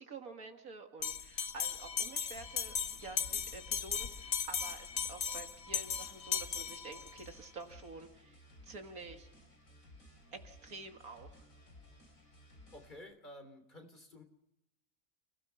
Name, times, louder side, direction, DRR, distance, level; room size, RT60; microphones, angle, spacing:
voice 1, 0.0-9.3 10.3-11.3, right 3 dB, 90° right, 4 dB, 2.4 m, -49 dB
Bell, 1.0-7.3, left 7 dB, 50° left, 1.1 m, -37 dB
sound 1, 2.3-13.0, left 1 dB, 70° left, 4.6 m, -58 dB
voice 2, 12.7-14.2, left 1 dB, 35° left, 5 dB, 3.3 m, -52 dB
29.5 x 16.5 x 5.8 m, 0.88 s
omnidirectional pair, 1.5 m